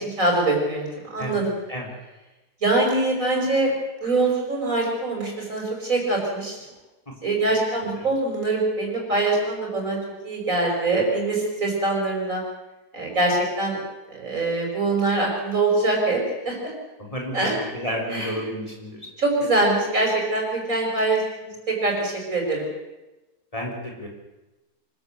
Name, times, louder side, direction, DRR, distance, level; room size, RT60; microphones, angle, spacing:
voice 1, 0.0-1.5 2.6-3.7 4.0-6.6 7.2-10.0 10.2-12.4 12.9-13.8 14.1-16.2 16.4-16.7 17.3-17.5 18.1-18.3 19.2-22.7, right 2 dB, 55° right, -1 dB, 6.3 m, -23 dB
voice 2, 17.0-19.1 23.5-24.1, equal, 20° left, 0 dB, 4.0 m, -31 dB
25.0 x 13.5 x 8.1 m, 1.1 s
omnidirectional pair, 1.6 m